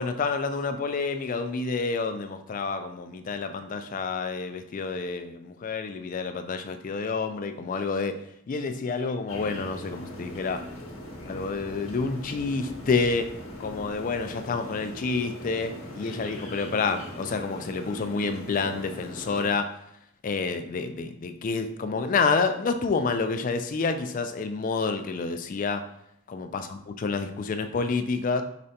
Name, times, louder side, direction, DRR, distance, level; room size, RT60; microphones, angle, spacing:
voice 1, 0.0-8.1 8.5-10.6 11.3-13.3 13.6-19.7 20.2-25.8 26.3-28.4, left 4 dB, 40° left, 8 dB, 0.3 m, -28 dB
sound 1, 9.3-19.5, left 1 dB, 65° left, 0.9 m, -40 dB
5.0 x 3.2 x 2.8 m, 0.75 s
head